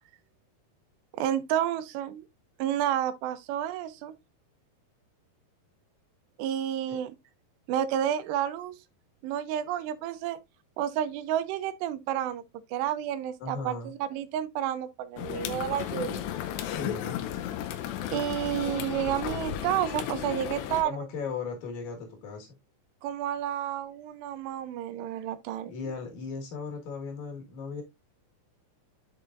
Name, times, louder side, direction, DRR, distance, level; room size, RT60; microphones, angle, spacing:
voice 1, 1.1-2.2 2.6-4.1 6.4-7.2 7.7-8.8 9.2-10.4 10.8-12.4 12.7-16.3 18.1-21.1 23.0-25.7, right 11 dB, 80° right, 3.0 m, -30 dB
voice 2, 13.4-13.9 16.6-17.2 20.8-22.5 25.7-27.8, left 5 dB, 55° left, 2.8 m, -37 dB
sound 1, 15.2-20.8, left 10 dB, 85° left, 3.0 m, -34 dB
11.0 x 4.9 x 2.5 m
omnidirectional pair, 4.9 m